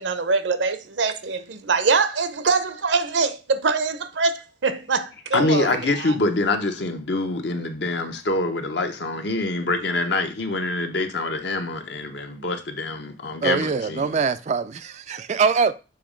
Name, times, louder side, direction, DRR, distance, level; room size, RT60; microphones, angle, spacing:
voice 1, 0.0-6.2, right 4 dB, 70° right, 0.7 m, -24 dB
voice 2, 5.3-14.2, left 2 dB, 65° left, 0.9 m, -25 dB
voice 3, 13.4-15.8, right 5 dB, 35° right, 0.3 m, -23 dB
6.9 x 3.0 x 5.0 m
head